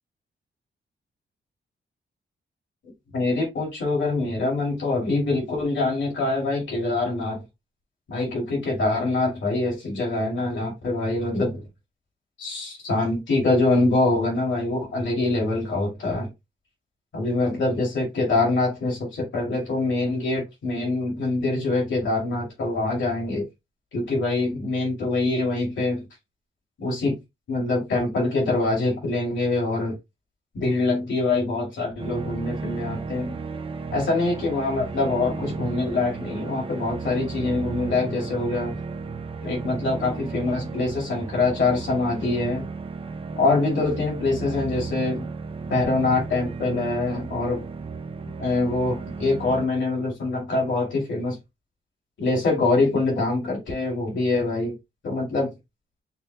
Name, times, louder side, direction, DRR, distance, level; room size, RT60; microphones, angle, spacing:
voice 1, 3.1-7.4 8.1-11.6 12.4-16.3 17.1-23.4 23.9-26.0 26.8-27.2 27.5-29.9 30.5-33.4 33.9-38.8 39.4-42.7 43.4-45.3 45.7-47.7 48.4-51.4 52.2-54.7 55.0-55.5, left 2 dB, 75° left, 2.4 m, -24 dB
sound 1, 32.0-49.7, right 4 dB, 30° right, 0.4 m, -34 dB
5.8 x 2.1 x 3.3 m
wide cardioid pair, 120°, 19 cm